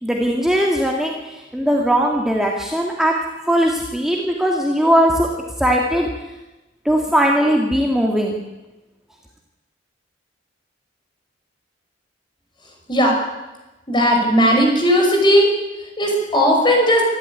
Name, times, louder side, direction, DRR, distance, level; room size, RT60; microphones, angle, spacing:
voice 1, 0.0-1.2 1.5-5.3 5.6-6.1 6.9-8.4, equal, 5° right, -1 dB, 2.1 m, -19 dB
voice 2, 13.9-15.5 16.0-17.0, equal, 25° left, 1 dB, 6.1 m, -16 dB
25.5 x 13.5 x 9.8 m, 1.1 s
head